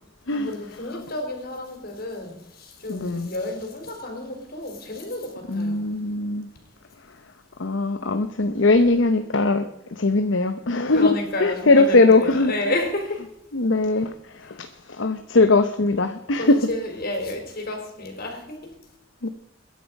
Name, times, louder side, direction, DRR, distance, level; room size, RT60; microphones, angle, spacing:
voice 1, 0.3-5.8 10.9-13.3 16.4-18.7, left 1 dB, 50° left, 3 dB, 4.3 m, -31 dB
voice 2, 2.9-3.3 5.5-6.5 7.6-9.7 10.0-11.1 11.4-12.5 13.5-16.6 19.2-19.3, left 3 dB, 70° left, 8 dB, 0.9 m, -20 dB
21.5 x 11.0 x 5.3 m, 0.82 s
head